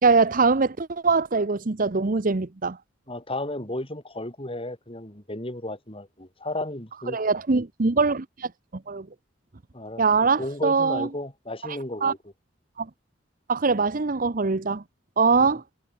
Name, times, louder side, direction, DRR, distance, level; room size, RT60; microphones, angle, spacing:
voice 1, 0.0-2.8 7.1-8.5 8.9-9.1 10.0-11.1 12.0-12.1 12.8-12.9 13.5-14.8 15.2-15.6, right 4 dB, 45° right, 0.8 m, -22 dB
voice 2, 3.1-7.2 9.7-10.0 10.4-12.2 15.4-15.6, left 1 dB, 30° left, 6.8 m, -33 dB
head